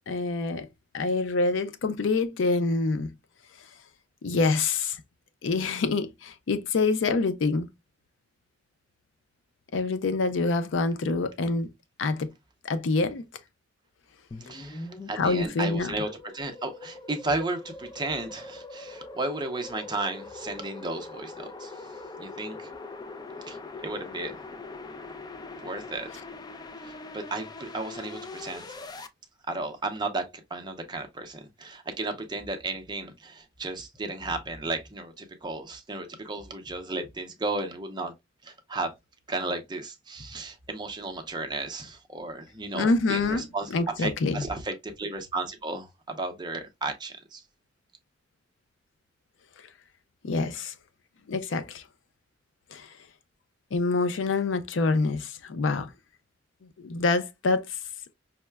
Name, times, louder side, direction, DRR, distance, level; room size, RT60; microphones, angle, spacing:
voice 1, 0.1-0.7 0.9-3.1 4.2-5.0 5.4-7.7 9.7-11.7 12.0-12.3 12.6-13.2 15.2-15.9 42.7-43.4 43.7-44.4 50.2-50.7 51.3-51.8 52.7-52.9 53.7-55.9 56.8-57.6, left 3 dB, 85° left, 0.5 m, -26 dB
sound 1, 14.3-29.1, left 3 dB, 20° left, 0.3 m, -42 dB
voice 2, 14.4-22.7 23.5-23.6 23.8-24.4 25.6-26.1 26.8-28.8 29.5-38.1 38.4-38.9 39.3-47.4, right 2 dB, 25° right, 0.6 m, -34 dB
5.5 x 2.1 x 2.2 m
head